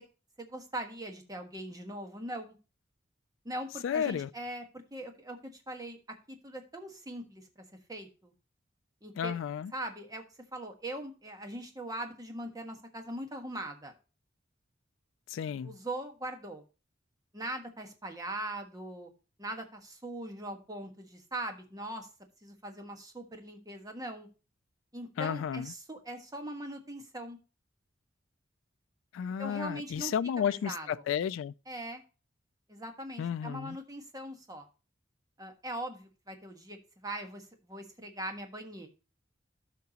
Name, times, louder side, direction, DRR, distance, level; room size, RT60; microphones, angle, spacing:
voice 1, 0.4-2.6 3.4-4.6 4.9-6.0 6.3-8.3 9.0-9.4 9.7-10.2 10.5-13.9 15.6-16.6 17.3-19.1 19.4-22.1 22.4-24.3 24.9-27.4 29.4-30.1 30.5-31.0 31.7-32.0 32.7-34.7 35.4-38.9, right 1 dB, 20° right, 1.4 m, -41 dB
voice 2, 3.8-4.3 9.2-9.7 15.3-15.7 25.2-25.7 29.1-31.5 33.2-33.8, left 8 dB, 90° left, 0.3 m, -32 dB
13.0 x 5.8 x 2.9 m
head